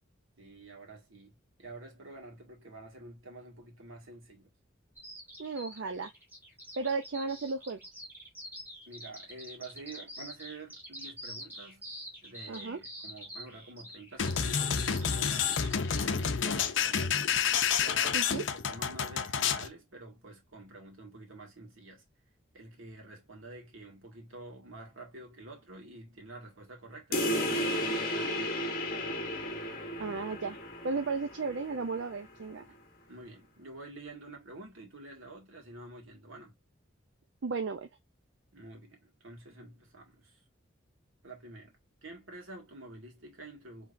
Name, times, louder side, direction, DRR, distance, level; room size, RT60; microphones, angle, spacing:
voice 1, 0.4-4.5 8.9-11.8 12.2-15.6 15.9-17.3 17.8-22.0 22.5-28.6 33.1-36.6 38.5-40.4 41.2-43.9, right 2 dB, 90° right, 2.1 m, -48 dB
Bird vocalization bird call bird song, 5.0-16.1, equal, 10° right, 1.7 m, -46 dB
voice 2, 5.4-6.1 6.8-7.8 12.5-12.8 18.1-18.4 30.0-30.6 30.8-32.6 37.4-37.9, right 4 dB, 70° right, 0.5 m, -34 dB
sound 1, 14.2-19.7, left 7 dB, 70° left, 0.6 m, -29 dB
sound 2, 27.1-32.2, equal, 45° left, 1.1 m, -33 dB
5.0 x 3.5 x 2.6 m
head